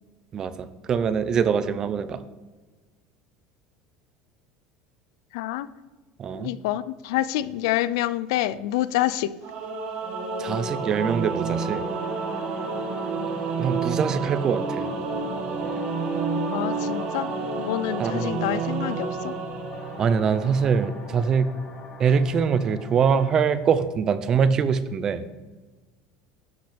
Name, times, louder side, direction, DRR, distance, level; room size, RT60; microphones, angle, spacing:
voice 1, 0.3-2.2 6.2-6.5 10.4-11.9 13.6-14.9 18.0-18.4 20.0-21.5 22.0-25.2, right 6 dB, 30° right, 14 dB, 0.5 m, -23 dB
voice 2, 5.3-5.7 6.3-9.3 13.1-13.4 16.5-19.3, left 14 dB, 85° left, 16 dB, 0.4 m, -27 dB
Singing / Musical instrument, 9.4-20.7, right 4 dB, 50° right, 1.4 m, -30 dB
sound 1, 11.5-23.5, left 1 dB, 30° left, 1.6 m, -42 dB
11.5 x 5.9 x 5.2 m, 1.3 s
cardioid pair, 155°, 2 cm